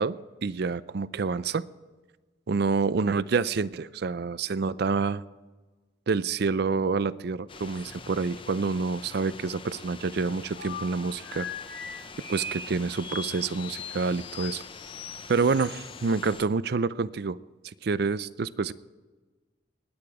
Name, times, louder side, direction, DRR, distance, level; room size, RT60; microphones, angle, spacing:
voice 1, 0.0-1.6 2.5-5.2 6.1-11.5 12.3-14.6 15.3-17.4 17.6-18.7, right 4 dB, 60° right, 17 dB, 0.5 m, -27 dB
sound 1, 7.5-16.5, left 4 dB, 30° left, 0.6 m, -45 dB
sound 2, 10.6-16.4, left 3 dB, 80° left, 4.4 m, -40 dB
20.0 x 8.8 x 4.9 m, 1.3 s
head